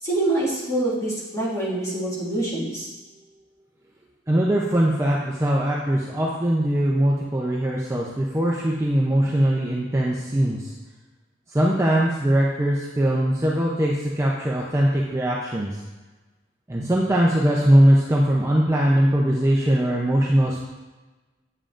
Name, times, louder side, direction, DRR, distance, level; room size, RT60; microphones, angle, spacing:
voice 1, 0.0-2.9, right 2 dB, 15° left, -8 dB, 1.9 m, -25 dB
voice 2, 4.3-10.7 11.5-15.8 16.7-20.6, right 1 dB, 15° right, -3 dB, 0.5 m, -21 dB
8.7 x 7.3 x 2.5 m, 1.2 s
head